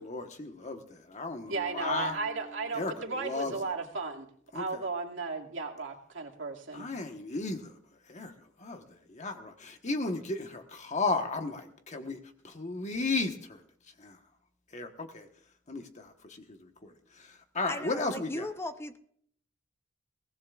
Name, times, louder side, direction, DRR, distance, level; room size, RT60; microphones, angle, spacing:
voice 1, 0.0-2.2 2.7-3.6 4.5-4.8 6.7-7.7 8.1-8.3 8.6-8.8 9.1-12.2 12.4-13.6 14.0-14.2 14.7-15.3 15.7-16.9 17.2-17.3 17.5-18.4, left 3 dB, 40° left, 5 dB, 1.3 m, -34 dB
Bass guitar, 1.5-4.5, right 2 dB, 40° right, 1.9 m, -52 dB
voice 2, 1.5-4.3 4.5-6.9, right 4 dB, 75° right, 0 dB, 2.4 m, -35 dB
voice 3, 17.7-19.0, left 1 dB, 15° left, 8 dB, 0.8 m, -37 dB
22.5 x 18.0 x 2.5 m, 0.62 s
head